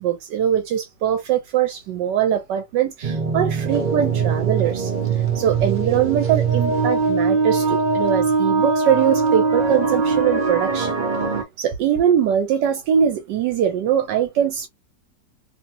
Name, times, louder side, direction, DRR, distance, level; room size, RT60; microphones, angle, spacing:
voice 1, 0.0-4.9 5.3-10.9 11.6-14.7, right 9 dB, 75° right, 1.2 m, -22 dB
sound 1, 3.0-11.4, right 4 dB, 45° right, 0.6 m, -21 dB
3.0 x 2.7 x 2.7 m
omnidirectional pair, 1.9 m